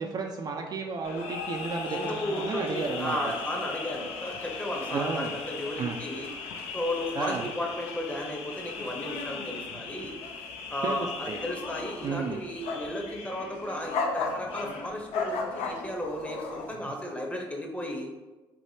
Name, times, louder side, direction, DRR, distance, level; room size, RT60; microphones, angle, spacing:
voice 1, 0.0-3.3 4.9-5.3 5.8-6.0 7.2-7.5 9.7-9.8 10.8-11.4 12.0-12.4, right 4 dB, 40° right, 2 dB, 0.3 m, -33 dB
sound 1, 1.0-16.7, left 4 dB, 75° left, 0.4 m, -36 dB
voice 2, 1.9-6.3 6.7-10.1 10.7-18.1, left 1 dB, 10° left, 0 dB, 0.7 m, -34 dB
3.3 x 2.1 x 2.7 m, 1.2 s
supercardioid pair, 60°, 11 cm